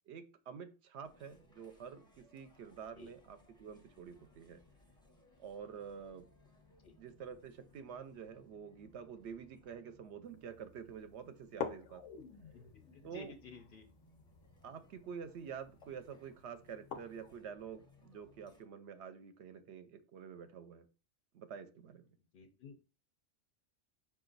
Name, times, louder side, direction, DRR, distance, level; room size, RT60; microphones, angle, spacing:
voice 1, 0.1-4.6 5.4-6.3 7.0-12.2 13.0-13.3 14.6-20.9 21.3-22.1, right 7 dB, 70° right, 10 dB, 0.8 m, -48 dB
sound 1, 1.0-18.6, left 1 dB, 5° left, 0.6 m, -66 dB
sound 2, 10.3-10.4 10.8-10.9 11.5-17.4, left 7 dB, 90° left, 1.0 m, -48 dB
voice 2, 12.9-13.9 22.3-22.7, left 3 dB, 60° left, 6 dB, 0.6 m, -52 dB
5.0 x 2.5 x 3.8 m, 0.33 s
omnidirectional pair, 1.2 m